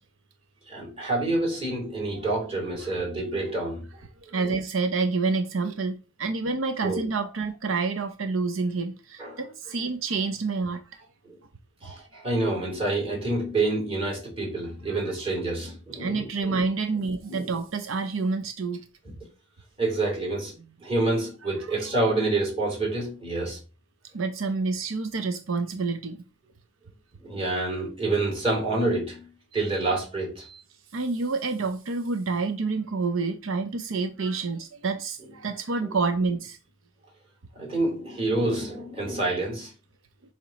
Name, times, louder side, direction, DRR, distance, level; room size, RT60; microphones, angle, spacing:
voice 1, 0.7-3.9 6.8-7.0 9.2-9.4 11.2-11.4 11.8-16.6 17.3-17.5 19.0-19.1 19.8-20.5 20.8-23.6 27.2-30.6 35.8-35.9 37.5-39.7, right 2 dB, 30° right, 2.9 m, -28 dB
voice 2, 4.2-10.8 14.9-15.0 16.0-18.8 21.8-21.9 24.1-26.2 30.9-36.6, right 4 dB, 85° right, 0.7 m, -28 dB
7.1 x 3.0 x 5.1 m
head